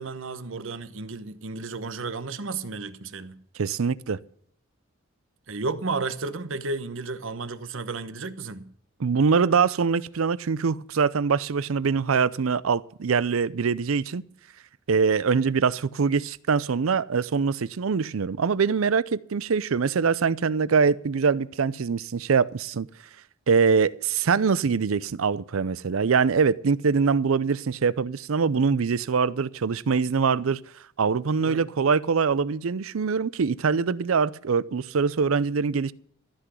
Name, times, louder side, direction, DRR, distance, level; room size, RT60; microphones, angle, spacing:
voice 1, 0.0-3.4 5.5-8.7 31.4-31.7, right 3 dB, 70° right, 1.0 m, -33 dB
voice 2, 3.6-4.2 9.0-14.2 14.9-22.9 23.5-30.6 31.0-35.9, right 5 dB, 90° right, 0.5 m, -23 dB
14.0 x 6.1 x 9.8 m
head